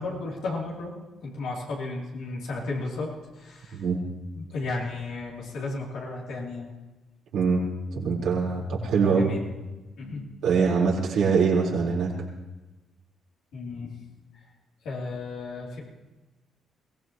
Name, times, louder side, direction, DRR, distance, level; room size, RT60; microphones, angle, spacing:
voice 1, 0.0-3.8 4.3-6.7 9.0-9.4 10.0-10.2 13.5-13.9 14.3-14.4 14.8-15.8, left 3 dB, 80° left, -4 dB, 3.3 m, -34 dB
voice 2, 3.7-4.0 7.3-7.7 7.9-9.3 10.4-12.1, right 5 dB, 80° right, -5 dB, 4.4 m, -23 dB
22.5 x 17.0 x 3.1 m, 1.1 s
cardioid pair, 90°, 0 cm